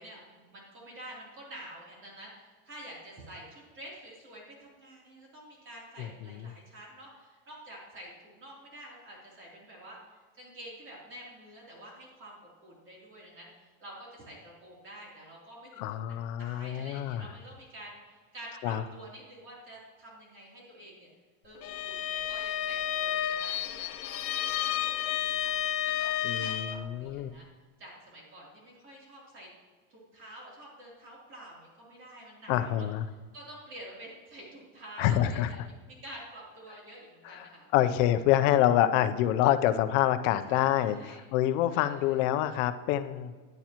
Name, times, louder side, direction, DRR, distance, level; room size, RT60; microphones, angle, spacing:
voice 1, 0.0-10.0 10.3-15.7 16.1-21.1 21.4-27.4 27.8-29.5 29.9-32.9 33.3-35.6 35.9-37.9 40.4-41.2 41.7-42.2, right 1 dB, 30° right, -3 dB, 3.2 m, -48 dB
voice 2, 15.8-17.3 18.6-18.8 26.2-27.3 32.5-33.0 35.0-35.7 37.2-43.3, left 12 dB, 65° left, 11 dB, 0.7 m, -27 dB
Bowed string instrument, 21.6-26.9, left 11 dB, 35° left, 0.4 m, -31 dB
11.0 x 9.0 x 3.0 m, 1.4 s
supercardioid pair, 145°, 40 cm